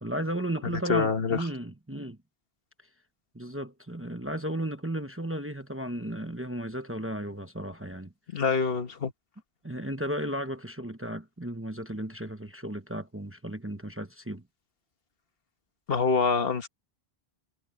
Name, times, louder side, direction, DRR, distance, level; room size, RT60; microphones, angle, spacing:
voice 1, 0.0-2.2 3.3-8.1 9.6-14.4, right 1 dB, 15° right, 0.9 m, -34 dB
voice 2, 0.6-1.4 8.3-9.1 15.9-16.7, left 5 dB, 65° left, 1.5 m, -26 dB
omnidirectional pair, 1.1 m